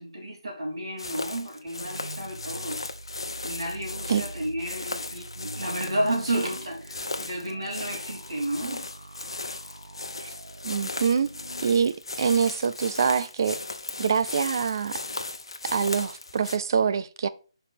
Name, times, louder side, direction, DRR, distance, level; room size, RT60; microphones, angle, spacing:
voice 1, 0.0-2.8 3.4-8.8, right 1 dB, 65° right, 3.2 m, -32 dB
sound 1, 1.0-16.6, left 3 dB, 70° left, 0.8 m, -37 dB
sound 2, 1.8-11.8, right 2 dB, 90° right, 1.6 m, -44 dB
voice 2, 10.6-11.3 11.6-13.6 14.0-15.0 15.7-17.3, right 6 dB, 45° right, 0.5 m, -25 dB
5.5 x 4.0 x 6.1 m
figure-of-eight pair, 155°, 3 cm